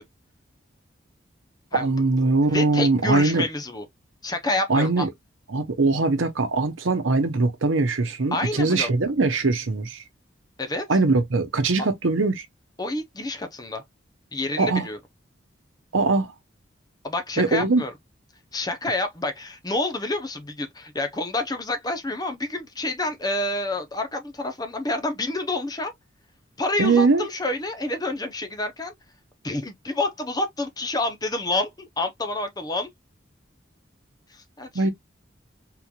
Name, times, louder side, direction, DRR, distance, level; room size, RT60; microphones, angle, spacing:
voice 1, 1.7-3.4 4.7-5.1 5.5-10.0 10.9-12.5 14.6-14.9 15.9-16.3 17.4-17.8 26.8-27.3 34.7-34.9, right 3 dB, 85° right, 0.8 m, -21 dB
voice 2, 2.4-3.8 4.2-5.1 8.3-8.9 10.6-10.9 12.8-13.8 14.3-15.0 17.0-17.9 18.5-25.9 26.6-28.9 29.4-32.9 34.3-34.9, left 2 dB, 20° left, 0.6 m, -28 dB
3.8 x 3.0 x 2.3 m
head